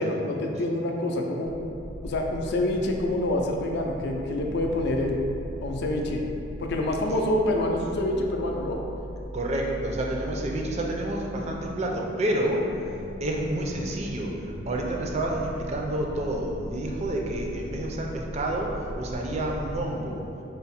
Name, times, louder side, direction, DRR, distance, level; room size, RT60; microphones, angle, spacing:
voice 1, 0.0-1.5 2.0-5.2 5.6-6.2 6.6-8.8, left 1 dB, 60° left, 1 dB, 0.4 m, -27 dB
sound 1, 1.4-19.8, equal, 80° right, 0.9 m, -39 dB
voice 2, 9.3-12.6 13.2-20.2, right 1 dB, 35° right, 0 dB, 0.4 m, -29 dB
3.4 x 2.1 x 4.1 m, 2.8 s
head